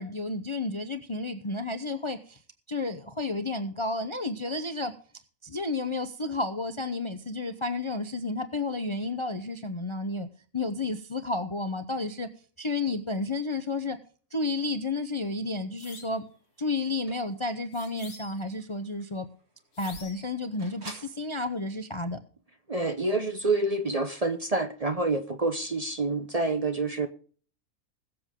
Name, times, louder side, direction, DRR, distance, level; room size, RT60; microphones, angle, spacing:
voice 1, 0.0-2.4 2.7-4.9 5.4-10.3 10.5-12.3 12.6-14.0 14.3-16.3 16.6-19.3 19.8-22.2, left 2 dB, 30° left, 0.6 m, -31 dB
sound 1, 15.8-16.2 17.7-18.6 19.7-20.4, left 4 dB, 85° left, 2.1 m, -47 dB
sound 2, 16.1-21.2, right 1 dB, 90° right, 4.2 m, -51 dB
voice 2, 22.7-27.1, right 2 dB, 30° right, 0.8 m, -27 dB
21.0 x 7.5 x 3.6 m
omnidirectional pair, 1.5 m